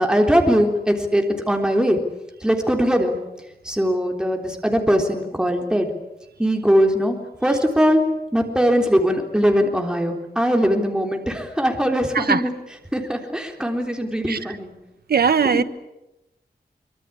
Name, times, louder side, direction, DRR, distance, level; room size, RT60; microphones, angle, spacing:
voice 1, 0.0-2.0 2.4-3.2 3.6-5.9 6.4-7.2 7.4-8.0 8.3-12.5 12.9-14.7 15.5-15.6, equal, 5° right, 3 dB, 3.7 m, -20 dB
voice 2, 15.1-15.6, right 6 dB, 75° right, 11 dB, 1.4 m, -19 dB
25.0 x 25.0 x 8.7 m, 0.92 s
wide cardioid pair, 125°, 16 cm